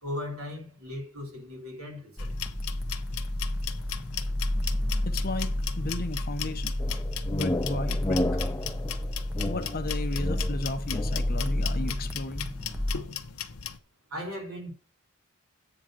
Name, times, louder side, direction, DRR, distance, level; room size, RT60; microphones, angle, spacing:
voice 1, 0.0-2.3 14.1-14.7, left 1 dB, 85° right, 3.1 m, -37 dB
sound 1, 2.2-13.8, left 9 dB, 85° left, 0.8 m, -38 dB
sound 2, 2.2-13.0, left 1 dB, 5° right, 1.1 m, -31 dB
voice 2, 5.0-6.8 7.3-8.4 9.4-12.5, left 2 dB, 45° left, 1.0 m, -34 dB
sound 3, 6.8-11.4, left 1 dB, 15° left, 0.4 m, -32 dB
9.0 x 3.8 x 6.1 m
head